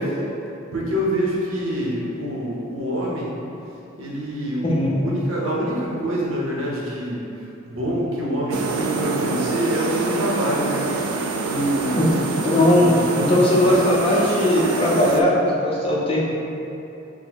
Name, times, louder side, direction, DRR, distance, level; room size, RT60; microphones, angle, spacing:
voice 1, 0.7-3.3 4.0-7.2 7.6-12.0 12.7-13.1, equal, 70° right, -5 dB, 0.8 m, -26 dB
voice 2, 4.6-5.0 12.0-12.1 12.4-16.3, left 1 dB, 25° left, -5 dB, 0.6 m, -19 dB
sound 1, 8.5-15.2, right 3 dB, 90° right, 0.3 m, -26 dB
6.0 x 2.2 x 2.9 m, 2.8 s
head